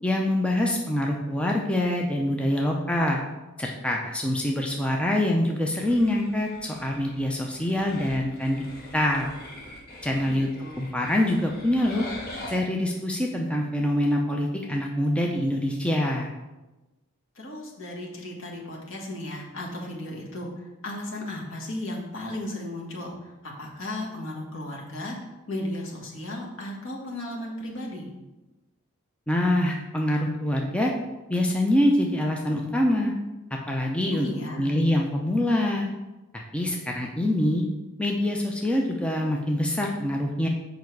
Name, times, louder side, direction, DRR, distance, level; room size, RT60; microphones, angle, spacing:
voice 1, 0.0-3.2 3.6-8.6 8.9-9.3 10.0-10.5 10.8-12.0 12.5-16.3 29.3-30.9 31.3-33.1 33.7-34.3 34.5-35.9 36.3-37.6 38.0-40.5, left 1 dB, 5° left, 0 dB, 0.6 m, -25 dB
sound 1, 5.8-12.5, left 1 dB, 45° left, 1.7 m, -43 dB
voice 2, 10.1-10.9 17.3-25.2 25.5-28.1 34.1-34.7, left 1 dB, 70° left, -1 dB, 1.7 m, -35 dB
7.2 x 5.2 x 4.6 m, 1.1 s
head